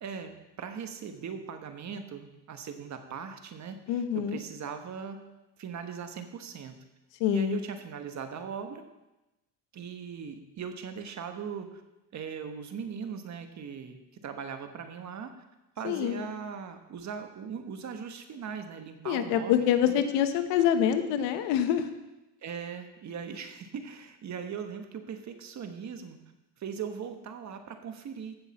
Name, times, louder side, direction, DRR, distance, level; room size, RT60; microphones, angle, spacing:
voice 1, 0.0-5.2 5.6-6.7 7.3-8.8 9.7-11.8 12.1-15.3 15.8-20.0 22.4-26.2 26.6-28.4, right 7 dB, 40° right, 7 dB, 1.3 m, -39 dB
voice 2, 3.9-4.4 7.2-7.6 15.8-16.2 19.1-21.9, left 9 dB, 90° left, 8 dB, 1.1 m, -26 dB
15.0 x 6.5 x 4.2 m, 1.0 s
cardioid pair, 110°, 42 cm